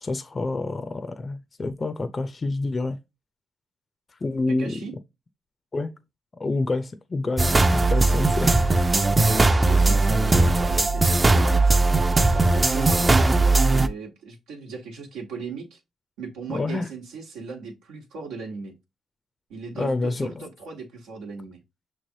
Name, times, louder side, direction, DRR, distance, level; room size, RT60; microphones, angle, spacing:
voice 1, 0.0-3.0 4.2-4.8 5.7-5.9 6.4-8.6 11.4-11.5 16.5-16.9 19.8-20.5, left 3 dB, 35° left, 0.5 m, -28 dB
voice 2, 4.5-4.9 9.2-11.8 12.3-15.8 16.2-18.7 19.5-21.6, right 4 dB, 90° right, 1.1 m, -37 dB
sound 1, 7.4-13.9, right 2 dB, 25° right, 0.4 m, -19 dB
5.9 x 3.2 x 2.7 m
supercardioid pair, 65°, 0 cm